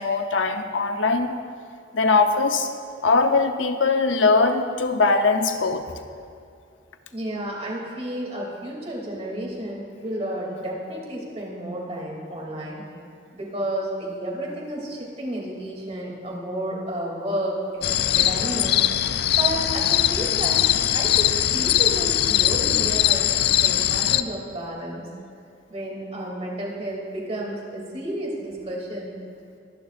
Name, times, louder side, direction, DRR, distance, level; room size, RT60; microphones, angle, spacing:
voice 1, 0.0-1.4 1.9-2.7 3.0-5.9, left 3 dB, 85° left, 6 dB, 0.9 m, -21 dB
voice 2, 7.1-12.8 13.3-18.8 19.4-20.7 20.9-23.3 23.6-25.1 25.7-29.2, right 1 dB, 35° right, -2 dB, 2.8 m, -31 dB
sound 1, 17.8-24.2, left 12 dB, 60° left, 0.4 m, -21 dB
23.5 x 11.0 x 2.6 m, 2.4 s
head